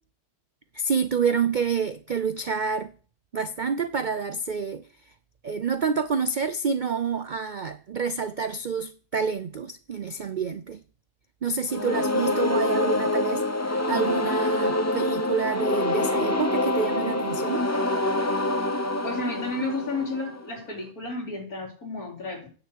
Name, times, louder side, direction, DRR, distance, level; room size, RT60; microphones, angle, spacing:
voice 1, 0.7-2.9 3.3-4.9 5.4-10.8 11.4-17.7, right 5 dB, 75° right, 0.4 m, -28 dB
sound 1, 11.7-20.6, left 2 dB, 15° left, 0.7 m, -26 dB
voice 2, 19.0-22.5, left 3 dB, 70° left, 4.1 m, -32 dB
10.0 x 6.1 x 8.0 m
omnidirectional pair, 1.6 m